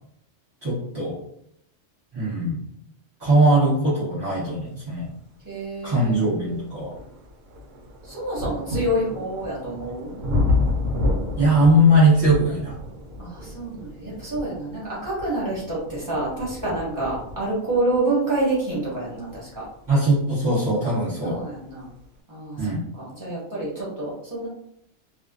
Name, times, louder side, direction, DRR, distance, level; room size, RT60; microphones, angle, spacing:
voice 1, 0.6-1.2 2.1-2.6 3.2-5.1 5.8-6.9 11.4-12.8 19.9-21.4 22.6-22.8, right 1 dB, 35° right, -10 dB, 0.4 m, -20 dB
voice 2, 5.4-6.7 8.0-10.1 13.2-19.6 21.2-21.9 22.3-24.5, right 2 dB, 15° right, -8 dB, 1.0 m, -28 dB
sound 1, 5.5-5.6 6.1-20.8 21.7-21.8, left 2 dB, 80° right, 1.0 m, -30 dB
2.4 x 2.3 x 2.4 m, 0.74 s
omnidirectional pair, 1.5 m